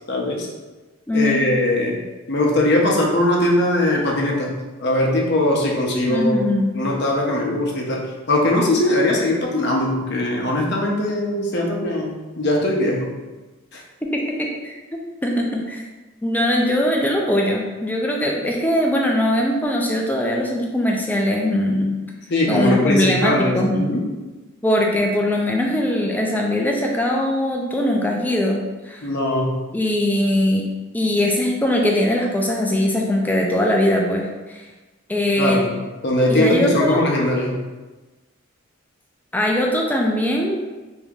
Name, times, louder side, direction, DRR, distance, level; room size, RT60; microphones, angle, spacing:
voice 1, 0.1-0.5 1.1-2.0 2.3-4.6 4.8-6.5 6.7-13.1 13.7-13.8 22.3-24.1 29.0-29.5 35.4-35.8 36.0-37.6, left 1 dB, 50° left, -1 dB, 0.6 m, -20 dB
voice 2, 1.1-1.4 6.1-6.8 14.0-15.8 16.2-22.0 22.5-23.9 24.6-29.1 29.7-30.6 30.9-34.7 35.1-35.6 36.3-37.0 39.3-40.6, left 1 dB, 10° left, 0 dB, 0.3 m, -21 dB
2.9 x 2.7 x 3.5 m, 1.2 s
head